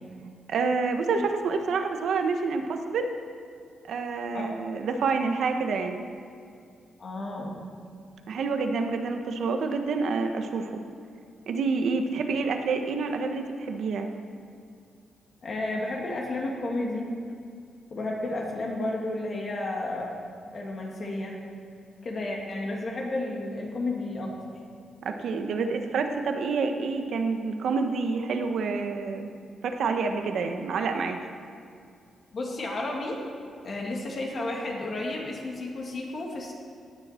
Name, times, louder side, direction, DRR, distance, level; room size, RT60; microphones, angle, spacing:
voice 1, 0.5-3.1 3.9-6.1 8.3-10.8 11.5-14.1 25.0-29.3 29.6-31.2, right 4 dB, 65° right, 5 dB, 1.1 m, -28 dB
voice 2, 7.0-7.6 15.4-17.1 17.9-20.2 20.5-21.4 22.0-24.3 32.3-33.2 33.6-36.5, left 2 dB, 40° left, -1 dB, 2.2 m, -32 dB
17.5 x 9.8 x 4.4 m, 2.3 s
wide cardioid pair, 160°, 0 cm